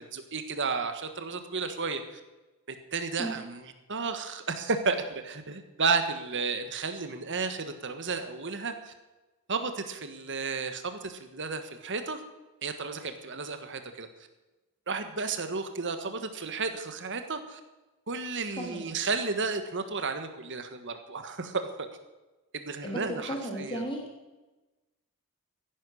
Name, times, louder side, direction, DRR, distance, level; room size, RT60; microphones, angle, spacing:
voice 1, 0.0-2.2 2.7-5.0 5.2-8.9 9.5-12.2 12.6-14.1 14.9-17.6 18.1-21.9 22.5-23.8, right 4 dB, 55° right, 8 dB, 1.5 m, -33 dB
voice 2, 18.5-18.9 22.8-24.0, equal, 25° left, 1 dB, 3.0 m, -35 dB
15.0 x 10.5 x 6.4 m, 1.1 s
head